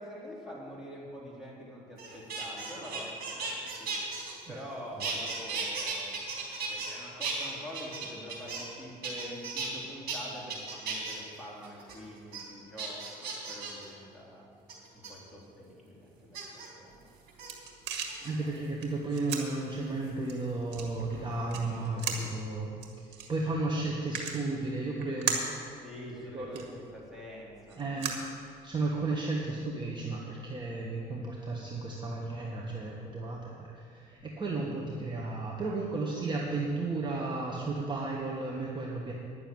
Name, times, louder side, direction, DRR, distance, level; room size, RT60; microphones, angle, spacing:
voice 1, 0.0-4.0 4.5-6.2 6.6-14.5 14.9-17.0 25.8-28.0, equal, ahead, -6 dB, 3.4 m, -45 dB
sound 1, 2.0-4.7 5.0-6.9 7.2-8.7 9.0-9.7 10.1-10.2 10.5-11.2 11.6-11.9 12.3-12.4 12.8-13.8 14.7-15.1 16.3-16.7 17.3-17.5 18.1-18.6 20.1-21.3 21.5-21.9, right 4 dB, 65° right, 3.5 m, -37 dB
sound 2, 16.9-29.0, right 6 dB, 90° right, 1.8 m, -40 dB
voice 2, 18.2-25.4 26.3-26.6 27.8-28.2 28.6-39.1, right 2 dB, 25° right, -2 dB, 1.4 m, -34 dB
10.5 x 6.8 x 9.3 m, 2.3 s
cardioid pair, 110°, 17 cm